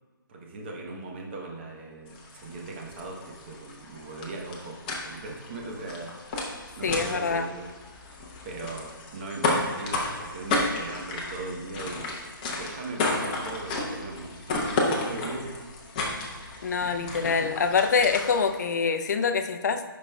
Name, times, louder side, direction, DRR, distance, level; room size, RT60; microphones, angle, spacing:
voice 1, 0.3-4.8 5.0-6.1 6.8-7.7 8.4-12.1 12.5-15.6 16.8-17.5, right 3 dB, 30° right, 0 dB, 0.9 m, -39 dB
sound 1, 2.1-18.6, left 2 dB, 20° left, 0.8 m, -33 dB
voice 2, 6.8-7.5 16.6-19.8, left 5 dB, 50° left, 7 dB, 0.5 m, -25 dB
10.5 x 5.2 x 2.2 m, 1.4 s
hypercardioid pair, 160°, 12 cm